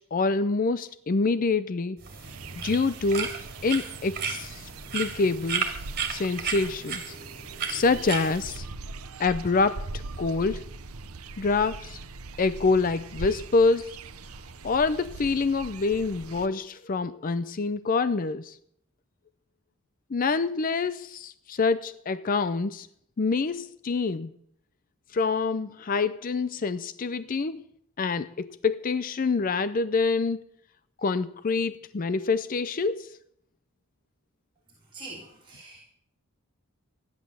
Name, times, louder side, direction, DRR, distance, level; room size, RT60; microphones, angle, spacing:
voice 1, 0.1-2.0 2.6-3.3 3.6-5.7 6.1-7.2 7.7-8.6 9.2-10.6 11.4-12.0 12.4-13.9 14.6-18.6 20.1-22.9 23.2-24.3 25.1-27.6 28.0-30.4 31.0-33.1, left 4 dB, 40° left, 13 dB, 0.5 m, -26 dB
sound 1, 2.0-8.6, right 6 dB, 45° right, 2.4 m, -34 dB
sound 2, 2.2-16.5, right 3 dB, 85° right, 0.8 m, -41 dB
voice 2, 34.9-35.8, right 2 dB, 25° right, -4 dB, 3.0 m, -43 dB
14.0 x 10.5 x 7.3 m, 0.71 s
head